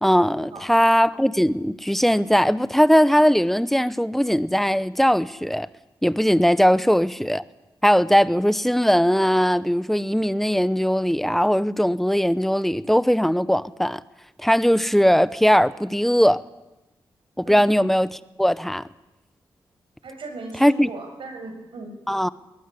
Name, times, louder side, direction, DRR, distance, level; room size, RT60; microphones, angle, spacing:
voice 1, 0.0-5.7 6.0-7.4 7.8-14.0 14.4-16.4 17.4-18.8 20.6-20.9 22.1-22.3, equal, 5° left, 0.8 m, -19 dB
voice 2, 20.0-21.9, right 3 dB, 80° right, 6.6 m, -38 dB
21.0 x 19.5 x 9.9 m
cardioid pair, 90°, 9 cm